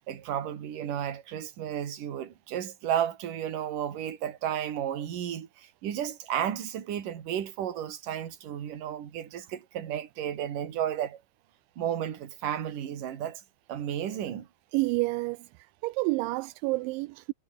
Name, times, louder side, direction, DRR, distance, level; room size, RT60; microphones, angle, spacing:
voice 1, 0.0-11.2 11.8-13.4 13.7-14.5, right 10 dB, 50° right, 3.4 m, -33 dB
voice 2, 14.7-17.3, right 22 dB, 85° right, 2.7 m, -29 dB
omnidirectional pair, 6.0 m